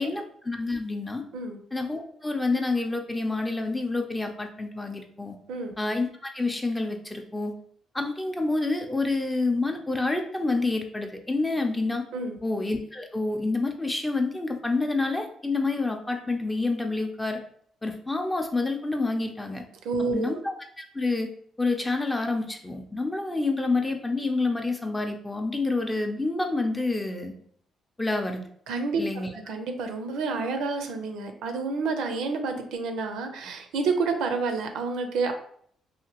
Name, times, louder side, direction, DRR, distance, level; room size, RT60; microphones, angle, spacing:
voice 1, 0.0-1.2 1.7-5.4 5.8-7.5 7.9-12.0 12.4-17.4 17.8-19.6 20.1-21.3 21.6-27.3 28.0-28.4 29.0-29.3, left 3 dB, 15° left, 4 dB, 0.5 m, -28 dB
voice 2, 19.8-20.4 28.7-35.3, right 4 dB, 85° right, 5 dB, 0.4 m, -29 dB
2.8 x 2.5 x 2.8 m, 0.62 s
cardioid pair, 90°, 0 cm